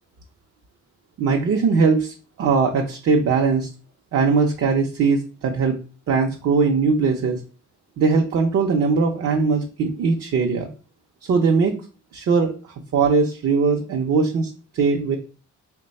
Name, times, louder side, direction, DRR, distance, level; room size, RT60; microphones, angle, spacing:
voice 1, 1.2-3.7 4.1-5.8 6.1-7.4 8.0-10.7 11.2-11.8 12.1-12.5 12.9-15.2, right 4 dB, 55° right, 2 dB, 0.6 m, -20 dB
3.1 x 2.2 x 4.0 m, 0.36 s
cardioid pair, 90°, 30 cm